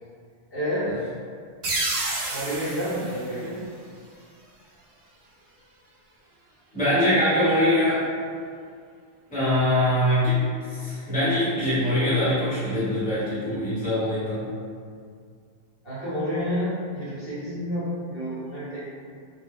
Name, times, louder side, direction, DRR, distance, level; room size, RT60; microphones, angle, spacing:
voice 1, 0.5-0.9 2.3-3.6 15.8-18.8, equal, 55° left, -12 dB, 1.2 m, -29 dB
sound 1, 1.6-4.2, right 2 dB, 60° right, 0.7 m, -30 dB
voice 2, 6.7-8.0 9.3-10.4 10.7-14.4, left 1 dB, 5° left, -13 dB, 1.1 m, -23 dB
2.3 x 2.3 x 3.6 m, 2.2 s
omnidirectional pair, 1.2 m